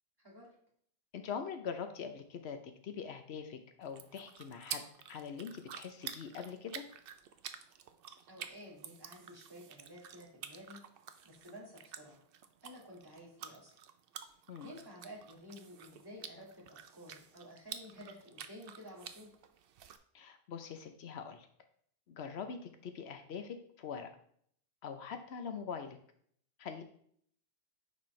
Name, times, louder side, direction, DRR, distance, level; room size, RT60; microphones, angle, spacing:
voice 1, 0.2-0.5 8.3-10.8 11.2-12.2 12.6-13.7 14.6-19.3, equal, 20° right, -4 dB, 2.1 m, -52 dB
voice 2, 1.1-2.6 2.8-6.8 14.5-14.7 20.1-21.5 22.1-24.1 24.8-26.0 26.6-26.8, left 6 dB, 85° left, 7 dB, 1.0 m, -43 dB
sound 1, 3.8-20.0, right 8 dB, 65° right, 0.7 m, -50 dB
9.5 x 4.3 x 3.2 m, 0.63 s
omnidirectional pair, 1.1 m